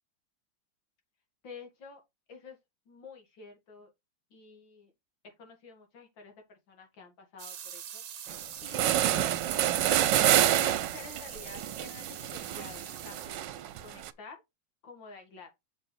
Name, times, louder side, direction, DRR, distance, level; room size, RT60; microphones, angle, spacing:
voice 1, 1.4-2.0 2.3-2.6 2.9-3.9 4.3-4.9 5.2-8.0 8.6-9.4 10.3-13.5 13.8-14.4 14.8-15.5, left 4 dB, 80° left, 2.7 m, -49 dB
sound 1, 7.4-13.3, right 9 dB, 55° right, 1.2 m, -44 dB
sound 2, 8.3-8.4 8.7-14.1, right 12 dB, 75° right, 1.3 m, -28 dB
7.4 x 6.3 x 3.3 m
omnidirectional pair, 2.0 m